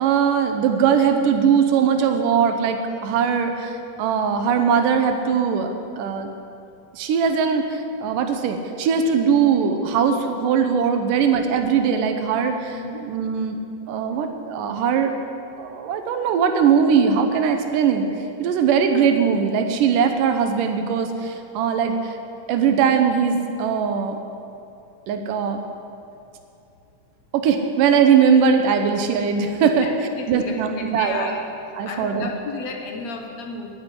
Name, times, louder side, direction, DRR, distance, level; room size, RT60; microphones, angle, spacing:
voice 1, 0.0-5.7 6.0-6.3 6.9-12.7 13.0-13.6 13.9-15.1 15.6-18.1 18.4-22.2 22.5-24.2 25.1-25.6 27.3-29.9 30.3-31.3 31.8-32.3, right 6 dB, 90° right, 6 dB, 2.6 m, -20 dB
voice 2, 12.7-13.1 29.7-31.5 31.8-33.7, left 4 dB, 65° left, 3 dB, 2.1 m, -32 dB
11.5 x 10.5 x 9.7 m, 2.6 s
omnidirectional pair, 3.7 m